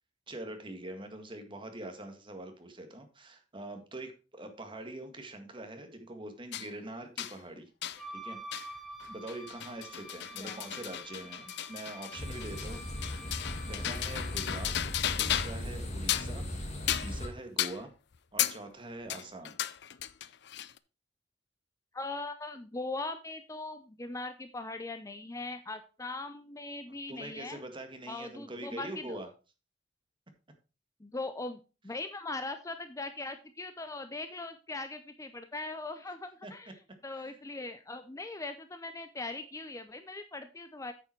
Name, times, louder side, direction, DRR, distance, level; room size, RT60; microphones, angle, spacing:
voice 1, 0.3-7.7 8.1-8.7 9.1-12.8 13.2-13.4 13.7-14.7 15.2-16.7 17.0-17.9 18.3-19.6 27.1-29.3 36.4-36.5 37.1-37.4, right 1 dB, 25° right, 6 dB, 1.8 m, -44 dB
sound 1, 6.5-6.7 7.2-7.4 7.8-8.0 8.5-8.7 9.0-15.7 16.0-16.4 16.9-17.2 17.6-17.8 18.4-18.6 19.1-20.8, left 11 dB, 60° left, 0.5 m, -35 dB
Wind instrument woodwind instrument, 8.0-14.7, right 1 dB, ahead, 1.2 m, -48 dB
sound 2, 12.2-17.3, left 1 dB, 35° left, 2.5 m, -38 dB
voice 2, 21.9-27.6 28.1-29.2 31.0-31.6 31.8-36.7 37.0-40.9, left 2 dB, 15° left, 9 dB, 0.6 m, -40 dB
9.0 x 6.9 x 4.5 m, 0.32 s
head